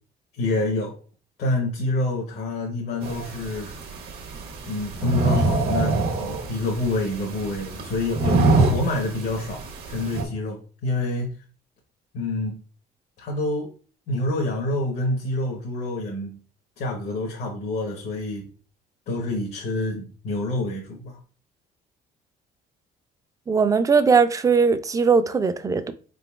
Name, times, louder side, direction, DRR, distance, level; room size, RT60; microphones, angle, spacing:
voice 1, 0.3-0.9 1.4-3.7 4.7-11.3 12.1-12.5 13.2-13.7 14.1-16.4 16.8-18.5 19.1-21.2, left 2 dB, 75° left, 1.0 m, -27 dB
sound 1, 3.0-10.2, right 3 dB, 70° right, 1.0 m, -25 dB
voice 2, 23.5-25.9, right 5 dB, 20° right, 0.4 m, -19 dB
4.3 x 3.8 x 2.3 m
cardioid pair, 110°, 17 cm